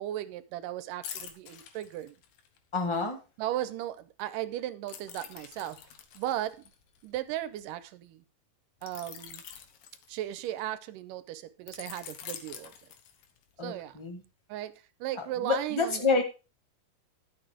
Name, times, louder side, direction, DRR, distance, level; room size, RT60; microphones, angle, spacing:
voice 1, 0.0-2.2 3.4-5.8 6.2-6.6 7.0-8.2 8.8-9.4 10.1-12.9 13.6-14.0 14.5-16.2, right 13 dB, 85° right, 2.3 m, -36 dB
sound 1, 1.0-2.6 4.9-7.6 8.8-10.7 11.7-13.5 13.9-14.1, left 9 dB, 85° left, 2.9 m, -46 dB
voice 2, 2.7-3.2 13.6-14.2 15.2-16.2, left 4 dB, 30° left, 0.5 m, -28 dB
12.0 x 6.6 x 4.8 m
omnidirectional pair, 3.8 m